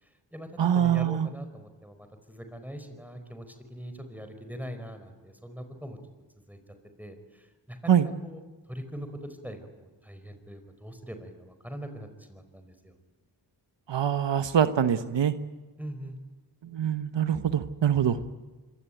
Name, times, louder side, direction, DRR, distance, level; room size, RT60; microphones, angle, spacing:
voice 1, 0.0-6.0 6.5-6.6 7.0-8.4 8.7-12.9 15.8-16.2, equal, 5° right, 7 dB, 4.8 m, -42 dB
voice 2, 0.6-1.3 7.9-8.1 13.9-15.3 16.7-18.2, right 9 dB, 80° right, 10 dB, 1.2 m, -24 dB
26.5 x 22.5 x 9.3 m, 1.2 s
cardioid pair, 65°, 43 cm